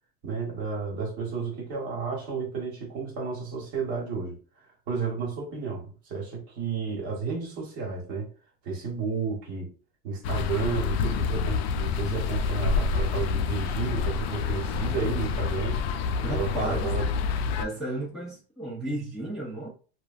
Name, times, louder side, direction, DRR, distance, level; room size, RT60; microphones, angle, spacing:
voice 1, 0.2-4.4 4.9-8.3 8.6-9.7 10.0-15.8 16.2-17.0, right 5 dB, 45° right, 1.3 m, -32 dB
sound 1, 10.2-17.6, left 5 dB, 85° left, 0.5 m, -28 dB
voice 2, 16.2-16.9 17.6-19.7, right 1 dB, ahead, 0.8 m, -33 dB
3.1 x 2.3 x 2.4 m
supercardioid pair, 160°, 30 cm